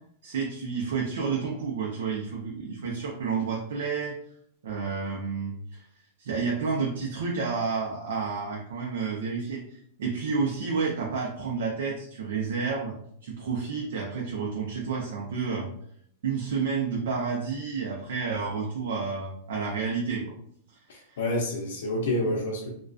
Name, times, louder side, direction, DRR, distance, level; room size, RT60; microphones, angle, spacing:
voice 1, 0.2-4.1 4.6-5.8 6.2-9.6 10.0-13.0 13.2-15.7 16.2-20.3 21.1-21.2 22.2-22.3, right 5 dB, 75° right, -2 dB, 0.5 m, -30 dB
voice 2, 20.9-22.7, left 1 dB, 85° left, -1 dB, 0.5 m, -28 dB
2.4 x 2.2 x 2.3 m, 0.66 s
supercardioid pair, 180°, 0 cm